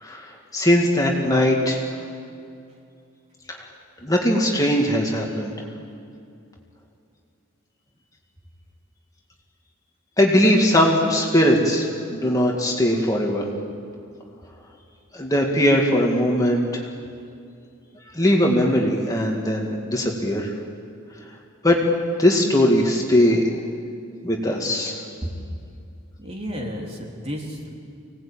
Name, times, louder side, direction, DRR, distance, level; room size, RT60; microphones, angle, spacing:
voice 1, 0.0-1.8 3.5-3.6 4.0-5.5 10.2-13.5 15.1-16.8 18.1-20.5 21.6-21.8 22.2-23.4 24.2-25.0, equal, 15° left, 0 dB, 2.1 m, -20 dB
voice 2, 26.2-27.7, equal, 30° right, 0 dB, 3.3 m, -32 dB
26.0 x 18.5 x 8.8 m, 2.5 s
head